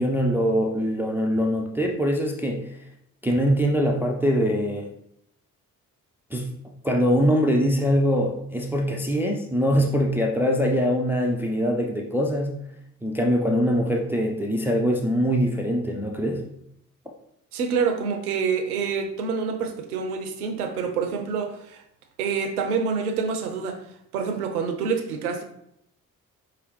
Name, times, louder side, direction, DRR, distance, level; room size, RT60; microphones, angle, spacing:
voice 1, 0.0-2.8 3.2-4.9 6.3-6.5 6.8-12.6 13.0-16.4, equal, 5° right, 1 dB, 0.3 m, -23 dB
voice 2, 17.5-21.8 22.2-23.8 24.1-25.4, right 5 dB, 80° right, 6 dB, 0.6 m, -27 dB
4.8 x 2.9 x 3.0 m, 0.74 s
figure-of-eight pair, 40°, 44 cm